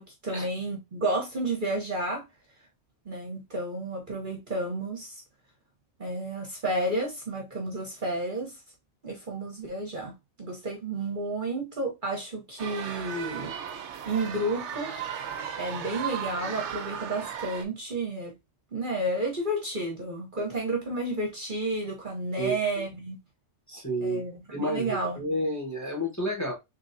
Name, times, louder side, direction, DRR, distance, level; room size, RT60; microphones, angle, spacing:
voice 1, 0.0-2.2 3.0-5.2 6.0-8.6 9.0-13.5 14.0-14.9 15.6-18.3 18.7-23.2 24.0-25.2, right 2 dB, 40° right, 1.1 m, -31 dB
sound 1, 12.6-17.6, right 8 dB, 65° right, 0.9 m, -36 dB
voice 2, 23.7-24.2 24.5-26.5, equal, 15° left, 1.4 m, -30 dB
3.7 x 3.2 x 2.6 m
omnidirectional pair, 1.4 m